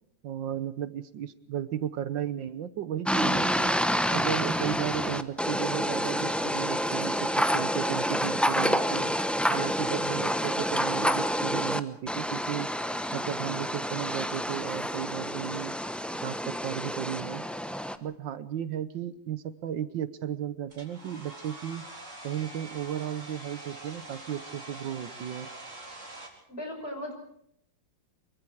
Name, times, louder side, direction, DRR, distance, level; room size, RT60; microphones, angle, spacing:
voice 1, 0.2-3.7 4.1-9.1 9.5-12.7 13.1-15.7 16.2-17.4 18.0-21.8 22.2-25.5, right 10 dB, 80° right, 14 dB, 1.7 m, -34 dB
sound 1, 3.1-11.8 12.1-18.0, equal, ahead, 0.4 m, -28 dB
Domestic sounds home sounds, 20.7-26.3, right 2 dB, 40° right, 4.4 m, -44 dB
voice 2, 26.5-27.1, left 1 dB, 30° left, 3 dB, 6.0 m, -37 dB
24.0 x 23.5 x 4.8 m, 0.70 s
omnidirectional pair, 2.0 m